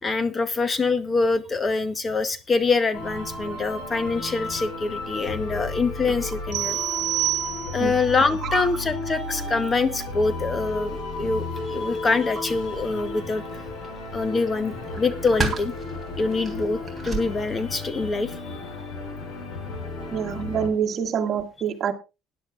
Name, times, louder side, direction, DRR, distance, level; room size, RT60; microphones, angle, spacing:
voice 1, 0.0-6.8 7.7-13.4 14.1-15.7 16.2-18.7, left 3 dB, 25° left, 12 dB, 0.8 m, -25 dB
sound 1, 2.9-20.7, left 3 dB, 70° left, 5.5 m, -33 dB
sound 2, 6.5-8.0, right 14 dB, 75° right, 1.0 m, -27 dB
sound 3, 12.7-18.1, right 3 dB, 5° right, 3.3 m, -35 dB
voice 2, 20.1-21.9, right 7 dB, 40° right, 1 dB, 1.9 m, -26 dB
20.0 x 10.5 x 2.4 m, 0.29 s
cardioid pair, 130°, 0 cm